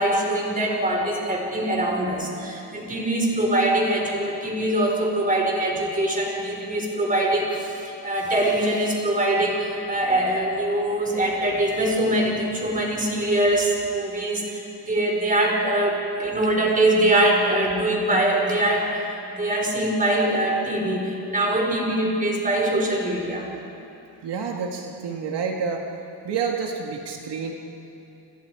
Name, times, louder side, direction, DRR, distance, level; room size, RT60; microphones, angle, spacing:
voice 1, 0.0-23.5, right 1 dB, 20° right, 0 dB, 4.9 m, -23 dB
voice 2, 24.2-25.8 26.2-27.5, right 5 dB, 80° right, 1 dB, 2.2 m, -28 dB
30.0 x 28.0 x 4.9 m, 2.9 s
wide cardioid pair, 145°, 41 cm